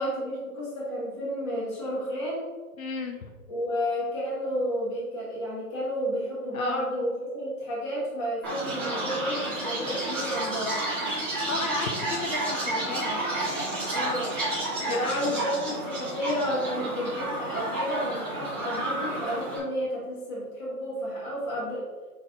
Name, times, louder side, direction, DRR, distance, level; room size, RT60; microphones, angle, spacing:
voice 1, 0.0-2.5 3.5-10.8 13.9-14.3 14.9-21.8, equal, 20° left, -9 dB, 1.9 m, -31 dB
voice 2, 2.8-3.3 6.5-6.9 11.3-13.2 14.9-15.3, left 4 dB, 65° left, 3 dB, 1.1 m, -34 dB
Chirp tweet, 8.4-19.6, right 1 dB, 15° right, 2.3 m, -31 dB
8.7 x 4.0 x 3.8 m, 1.3 s
hypercardioid pair, 175°, 45 cm